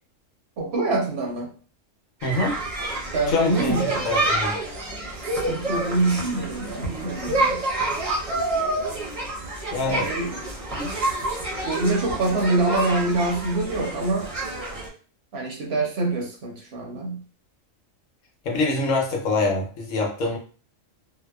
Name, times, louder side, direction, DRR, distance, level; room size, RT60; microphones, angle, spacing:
voice 1, 0.6-1.5 3.1-4.0 5.2-7.6 9.8-10.4 11.6-14.3 15.3-17.2, right 2 dB, 60° right, 1 dB, 0.8 m, -25 dB
voice 2, 2.2-2.6 3.3-3.7 4.0-4.5 9.7-10.1 10.7-10.9 18.4-20.4, left 3 dB, 75° left, 0 dB, 1.1 m, -24 dB
sound 1, 2.2-14.9, right 2 dB, 35° right, 0.7 m, -28 dB
2.7 x 2.0 x 2.2 m, 0.40 s
omnidirectional pair, 1.3 m